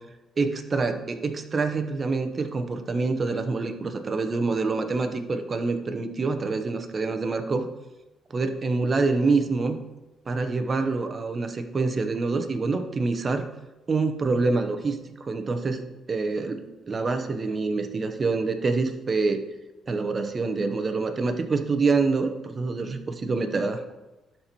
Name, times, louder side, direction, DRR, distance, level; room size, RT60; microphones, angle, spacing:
voice 1, 0.4-7.7 8.3-9.8 10.3-13.5 13.9-16.6 16.9-19.4 19.9-23.8, right 3 dB, 35° right, 7 dB, 0.8 m, -26 dB
12.0 x 4.3 x 3.0 m, 1.1 s
cardioid pair, 90°, 0 cm